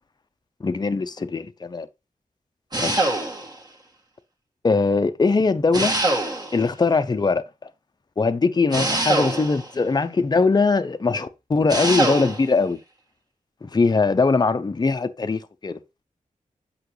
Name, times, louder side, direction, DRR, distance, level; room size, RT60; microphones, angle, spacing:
voice 1, 0.6-1.9 2.8-3.1 4.6-6.0 6.5-7.4 8.2-12.8 13.6-15.8, left 4 dB, 30° left, 0.6 m, -21 dB
sound 1, 2.7-3.6 5.7-6.7 8.7-9.7 11.7-12.5, right 2 dB, 30° right, 1.8 m, -24 dB
8.2 x 5.8 x 3.1 m
wide cardioid pair, 125°, 14 cm